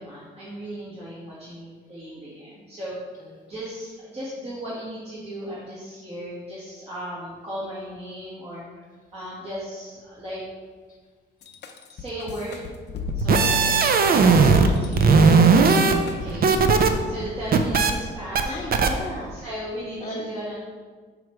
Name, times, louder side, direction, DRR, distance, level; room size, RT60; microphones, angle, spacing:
voice 1, 0.0-2.9 3.5-8.6 9.1-10.4 11.9-12.7 13.1-15.1 16.0-16.6 17.0-18.6 19.3-20.5, equal, 30° right, -9 dB, 1.7 m, -36 dB
sound 1, 11.4-16.5, left 6 dB, 60° left, 0.6 m, -35 dB
sound 2, 13.1-14.7 15.0-16.9 17.2-17.9 18.4-18.5 18.7-18.9, right 4 dB, 50° right, 0.6 m, -17 dB
voice 2, 15.7-16.2 18.4-19.4 20.0-20.3, left 1 dB, 20° left, -3 dB, 1.0 m, -35 dB
6.1 x 3.2 x 4.8 m, 1.5 s
cardioid pair, 90°, 20 cm